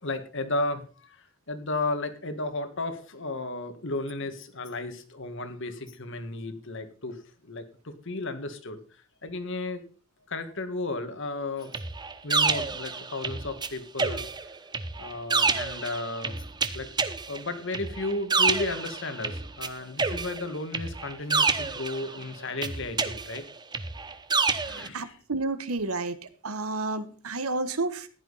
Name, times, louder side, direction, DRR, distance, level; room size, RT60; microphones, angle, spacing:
voice 1, 0.0-8.8 9.2-9.9 10.3-11.8 12.2-14.3 15.0-16.4 16.7-16.9 17.3-23.4 24.6-25.2, left 2 dB, 60° left, 9 dB, 1.8 m, -34 dB
sound 1, 11.7-13.7 14.0-19.7 20.0-22.2 22.6-24.9, right 4 dB, 20° right, 0.9 m, -28 dB
voice 2, 24.9-26.1 26.4-28.1, right 3 dB, 90° right, 12 dB, 1.3 m, -30 dB
15.0 x 10.5 x 4.1 m, 0.38 s
head